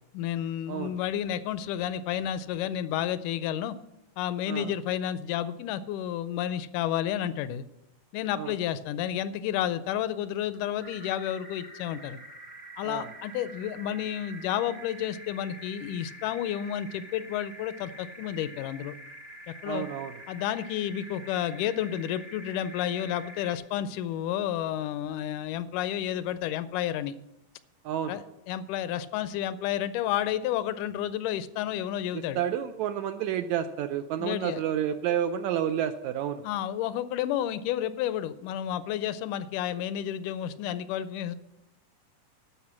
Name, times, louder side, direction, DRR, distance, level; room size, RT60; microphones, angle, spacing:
voice 1, 0.1-3.8 4.2-7.7 8.1-12.2 12.8-18.9 19.5-19.9 20.3-27.1 28.1-32.4 34.2-34.6 36.4-41.4, left 11 dB, 80° left, 14 dB, 2.0 m, -31 dB
sound 1, 10.8-23.6, right 1 dB, 40° right, 0.8 m, -46 dB
voice 2, 19.6-20.2 27.8-28.2 32.1-36.4, right 10 dB, 80° right, 9 dB, 1.7 m, -30 dB
12.5 x 5.6 x 7.3 m, 0.90 s
omnidirectional pair, 3.7 m